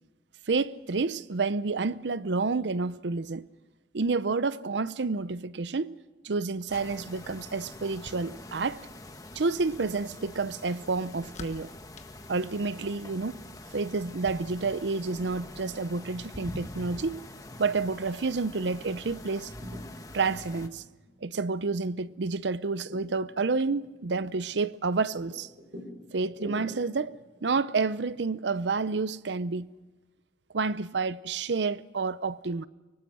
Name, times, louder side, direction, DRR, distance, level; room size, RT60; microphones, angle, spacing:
voice 1, 0.5-3.4 3.9-5.9 6.2-8.8 9.3-11.7 12.3-13.4 13.7-17.2 17.6-19.5 20.1-20.8 21.2-25.5 26.1-27.2 27.4-29.7 30.5-32.7, right 4 dB, 80° right, 0.7 m, -29 dB
sound 1, 6.7-20.7, left 1 dB, 20° left, 1.4 m, -45 dB
sound 2, 6.9-13.1, left 2 dB, 40° left, 1.3 m, -52 dB
sound 3, 19.3-28.9, equal, 65° right, 4.3 m, -48 dB
24.0 x 24.0 x 6.3 m
head